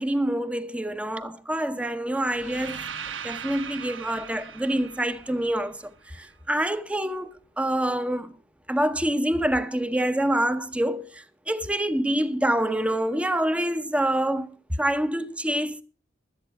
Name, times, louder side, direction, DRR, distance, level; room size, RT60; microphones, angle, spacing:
voice 1, 0.0-2.8 3.2-8.3 8.7-15.8, right 1 dB, 5° right, 0.8 m, -26 dB
sound 1, 2.2-6.3, right 7 dB, 85° right, 1.0 m, -39 dB
13.0 x 8.6 x 5.7 m
head